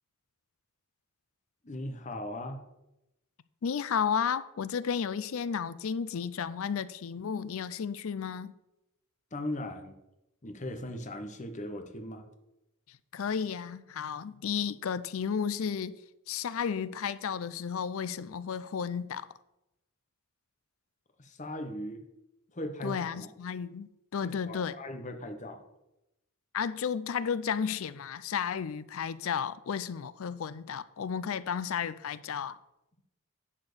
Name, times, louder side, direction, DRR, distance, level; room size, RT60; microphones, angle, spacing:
voice 1, 1.6-2.6 9.3-9.9 10.4-12.2 21.2-22.1 22.5-23.3 24.2-25.6, left 1 dB, 35° left, 1.0 m, -38 dB
voice 2, 3.6-8.5 13.1-16.0 16.3-19.3 22.8-24.7 26.5-32.6, left 7 dB, 70° left, 0.4 m, -33 dB
11.0 x 4.4 x 6.7 m
head